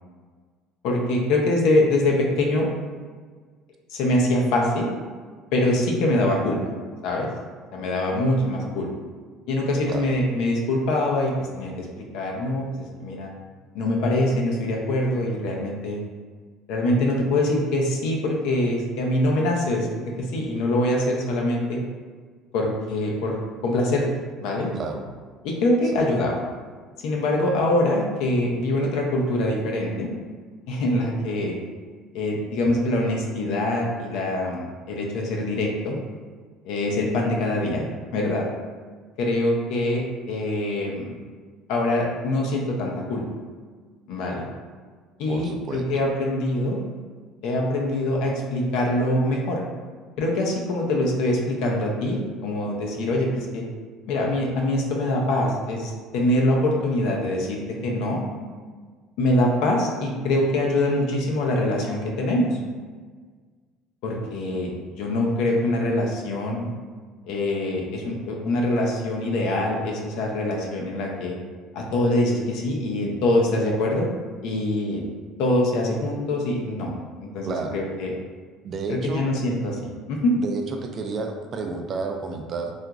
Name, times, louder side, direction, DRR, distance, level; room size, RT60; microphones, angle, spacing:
voice 1, 0.8-2.7 3.9-4.9 5.5-6.6 7.0-7.3 7.7-8.9 9.5-12.7 13.0-13.3 13.7-16.0 16.7-19.9 20.2-21.8 22.5-24.1 24.4-24.7 25.4-26.4 27.0-30.1 30.7-31.6 32.1-36.0 36.7-37.8 38.1-38.5 39.2-41.2 41.7-43.2 44.1-44.5 45.2-46.8 47.4-49.6 50.2-53.6 54.1-58.2 59.2-62.6 64.0-66.7 67.3-71.4 71.7-74.1 74.4-75.0 75.4-76.9 77.2-78.1 78.9-79.8 80.1-80.3, left 1 dB, 75° left, -1 dB, 0.5 m, -24 dB
voice 2, 45.3-45.8 77.5-77.8 78.6-79.2 80.4-82.7, right 4 dB, 40° right, 3 dB, 0.3 m, -31 dB
2.9 x 2.4 x 2.3 m, 1.5 s
cardioid pair, 130°, 0 cm